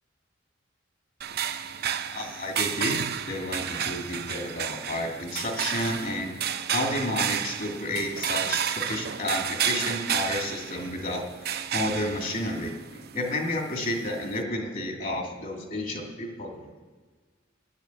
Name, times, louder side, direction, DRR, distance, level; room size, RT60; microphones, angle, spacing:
sound 1, 1.2-14.4, right 9 dB, 55° right, 0.7 m, -32 dB
voice 1, 2.1-6.4 6.7-11.2 11.7-16.7, left 1 dB, 45° left, 1 dB, 2.7 m, -31 dB
11.0 x 10.5 x 8.5 m, 1.4 s
head